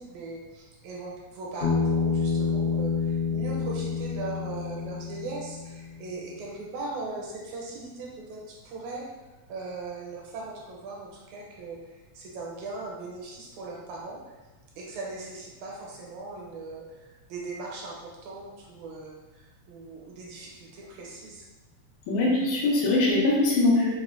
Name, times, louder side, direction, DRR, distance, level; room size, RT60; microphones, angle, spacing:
voice 1, 0.0-9.1 9.5-14.3 14.8-21.5, right 3 dB, 80° right, -3 dB, 1.9 m, -39 dB
Bass guitar, 1.6-5.9, left 5 dB, 55° left, 1.5 m, -28 dB
voice 2, 22.1-23.9, left 2 dB, 80° left, -4 dB, 2.1 m, -22 dB
4.9 x 2.1 x 2.4 m, 1.2 s
omnidirectional pair, 3.5 m